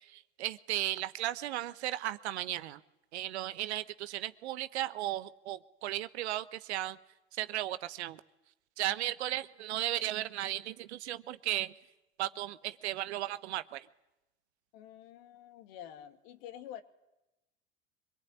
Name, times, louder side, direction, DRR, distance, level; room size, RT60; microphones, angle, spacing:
voice 1, 0.1-2.8 3.1-7.0 7.4-8.2 8.8-11.7 12.2-13.9, right 14 dB, 70° right, 14 dB, 1.1 m, -35 dB
voice 2, 14.7-16.8, left 10 dB, 60° left, 7 dB, 2.5 m, -48 dB
25.5 x 21.0 x 9.6 m, 0.97 s
hypercardioid pair, 80°, 34 cm